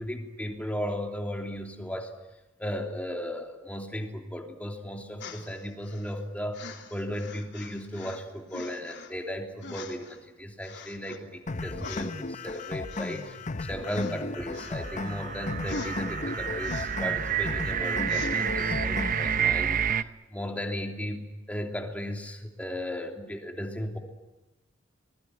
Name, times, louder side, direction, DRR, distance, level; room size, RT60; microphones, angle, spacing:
voice 1, 0.0-2.2 2.6-24.0, equal, 5° left, 2 dB, 3.1 m, -36 dB
sound 1, 5.2-6.2 6.5-8.2 8.5-9.1 9.6-10.2 10.6-11.2 11.8-13.6 13.9-14.2 14.5-15.2 15.7-17.4 18.1-18.7 19.3-19.4, left 4 dB, 60° left, 3.3 m, -44 dB
sound 2, 11.5-19.5, left 3 dB, 35° left, 0.8 m, -35 dB
sound 3, 14.4-20.0, right 7 dB, 45° right, 0.8 m, -29 dB
25.0 x 21.0 x 9.4 m, 1.0 s
head